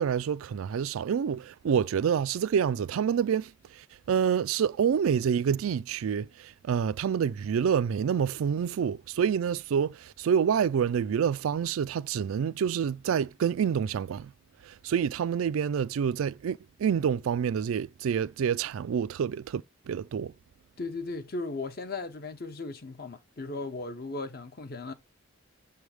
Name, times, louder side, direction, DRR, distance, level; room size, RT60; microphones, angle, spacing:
voice 1, 0.0-14.3 14.6-20.3, right 7 dB, 85° right, 0.3 m, -27 dB
voice 2, 20.8-24.9, left 3 dB, 50° left, 0.8 m, -36 dB
7.1 x 3.3 x 4.8 m
head